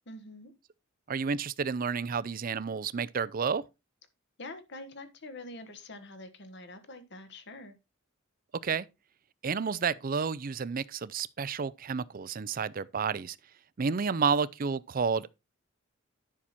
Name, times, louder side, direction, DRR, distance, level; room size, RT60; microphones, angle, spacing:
voice 1, 0.1-0.5 4.4-7.8, left 2 dB, 60° left, 1.5 m, -45 dB
voice 2, 1.1-3.6 8.6-8.9 9.4-13.4 13.8-15.3, right 5 dB, 45° right, 0.5 m, -30 dB
9.9 x 5.9 x 4.2 m
head